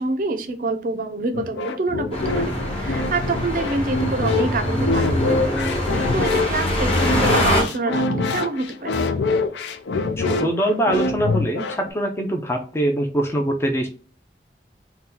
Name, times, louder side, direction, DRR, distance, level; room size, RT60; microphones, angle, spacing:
voice 1, 0.0-5.4 6.1-9.1, right 3 dB, 50° right, 6 dB, 0.5 m, -26 dB
sound 1, 1.3-11.9, left 3 dB, 85° left, 0.4 m, -25 dB
sound 2, 2.1-7.6, left 1 dB, 35° left, 1.0 m, -23 dB
voice 2, 10.2-13.9, right 1 dB, 15° left, 3 dB, 0.4 m, -23 dB
2.8 x 2.2 x 3.7 m, 0.38 s
head